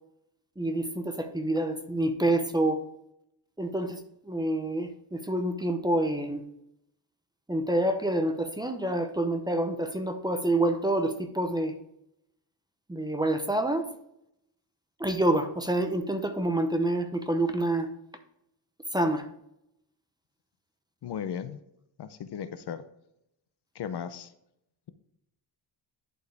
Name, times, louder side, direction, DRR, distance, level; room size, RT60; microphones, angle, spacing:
voice 1, 0.6-2.8 3.6-4.0 4.3-6.4 7.5-11.7 12.9-13.9 15.0-17.9 18.9-19.3, right 1 dB, 10° right, 6 dB, 0.7 m, -27 dB
voice 2, 21.0-21.6 22.0-22.8 23.8-24.3, left 8 dB, 60° left, 11 dB, 0.7 m, -36 dB
11.0 x 4.6 x 3.4 m, 0.80 s
wide cardioid pair, 130°, 46 cm